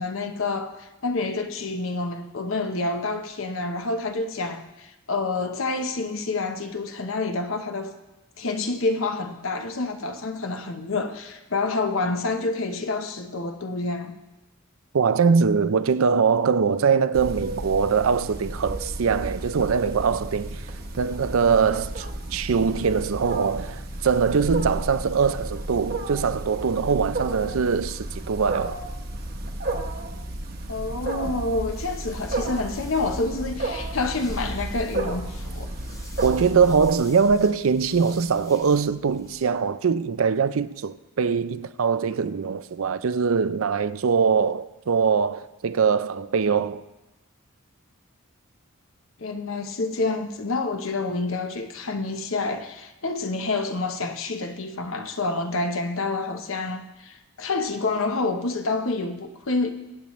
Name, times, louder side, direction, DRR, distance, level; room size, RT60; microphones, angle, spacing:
voice 1, 0.0-7.9 8.4-14.2 30.7-35.7 49.2-59.7, left 3 dB, 70° left, 0.9 m, -28 dB
voice 2, 14.9-20.6 21.0-28.8 36.2-46.8, right 5 dB, 80° right, 0.5 m, -22 dB
Wild animals, 17.1-36.9, right 1 dB, 50° right, 1.1 m, -33 dB
sound 1, 31.7-39.5, left 1 dB, 15° left, 1.0 m, -47 dB
22.5 x 8.5 x 3.1 m
head